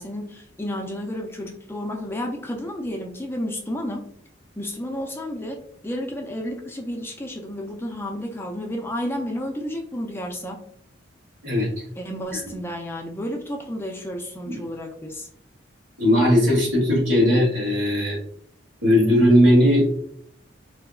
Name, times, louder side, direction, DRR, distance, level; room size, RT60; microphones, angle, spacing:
voice 1, 0.0-4.0 4.6-10.6 12.0-15.3, equal, 10° left, 2 dB, 0.3 m, -31 dB
voice 2, 16.0-18.2 18.8-19.9, equal, 75° right, -2 dB, 1.4 m, -18 dB
3.5 x 2.8 x 2.2 m, 0.63 s
head